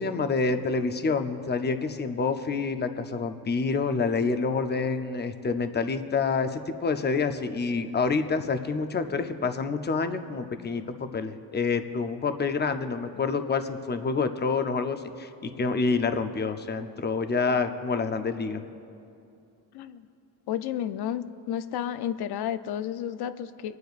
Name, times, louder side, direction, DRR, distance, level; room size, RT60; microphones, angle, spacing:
voice 1, 0.0-18.6, left 4 dB, 25° left, 8 dB, 0.6 m, -27 dB
voice 2, 19.7-20.1 20.5-23.8, left 10 dB, 85° left, 12 dB, 0.6 m, -32 dB
27.5 x 9.3 x 2.5 m, 2.6 s
cardioid pair, 125°, 38 cm